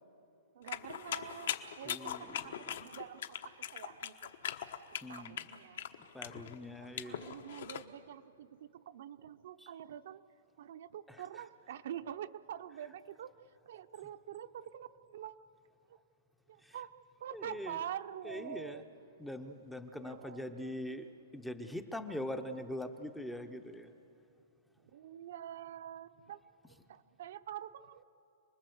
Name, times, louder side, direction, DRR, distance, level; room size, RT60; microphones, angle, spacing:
voice 1, 0.5-4.3 5.1-5.8 6.8-10.2 10.6-13.3 13.7-15.4 15.9-16.0 16.5-16.9 17.2-18.8 20.0-20.8 24.8-26.4 26.9-28.0, right 10 dB, 50° right, 9 dB, 0.7 m, -46 dB
sound 1, 0.7-7.8, left 9 dB, 55° left, 1.1 m, -41 dB
voice 2, 1.8-2.8 5.0-5.4 6.1-7.3 9.6-9.7 11.1-11.5 12.7-12.9 16.6-16.9 17.3-17.8 18.2-18.8 19.2-21.1 21.3-23.9 26.7-26.8, left 1 dB, ahead, 7 dB, 0.7 m, -43 dB
28.0 x 20.5 x 7.9 m, 2.7 s
hypercardioid pair, 175°, 0 cm